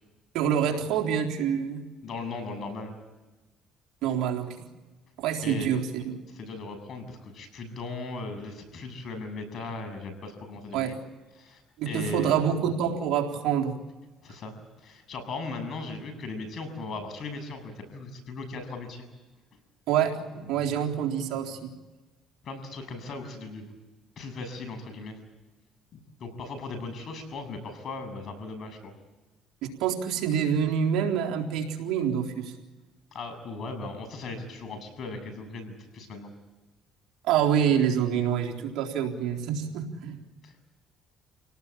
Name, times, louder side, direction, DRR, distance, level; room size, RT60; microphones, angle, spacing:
voice 1, 0.3-1.8 4.0-4.6 5.2-6.2 10.7-11.0 11.8-13.8 19.9-21.7 29.6-32.5 37.2-40.2, right 8 dB, 80° right, 1 dB, 3.7 m, -26 dB
voice 2, 2.0-2.9 5.4-5.7 6.3-11.0 11.4-12.3 14.2-19.0 22.4-23.6 24.2-25.2 25.9-28.9 33.1-36.3 40.4-40.5, left 3 dB, 55° left, 7 dB, 7.5 m, -38 dB
28.5 x 18.5 x 8.7 m, 1.2 s
supercardioid pair, 85°, 0 cm